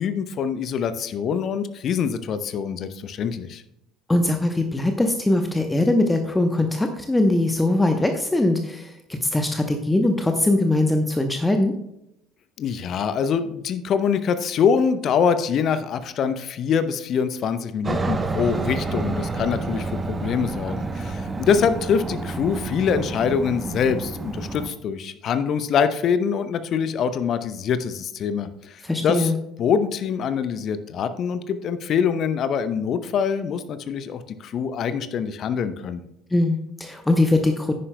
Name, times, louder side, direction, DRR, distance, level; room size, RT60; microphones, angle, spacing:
voice 1, 0.0-3.6 12.6-29.3 29.6-36.0, left 7 dB, 45° left, 12 dB, 0.7 m, -24 dB
voice 2, 4.1-11.8 28.8-29.4 36.3-37.7, left 2 dB, 10° left, 6 dB, 0.9 m, -21 dB
Aircraft, 17.8-24.7, right 3 dB, 25° right, 0.8 m, -29 dB
10.5 x 9.7 x 2.2 m, 0.84 s
figure-of-eight pair, 60°, 0 cm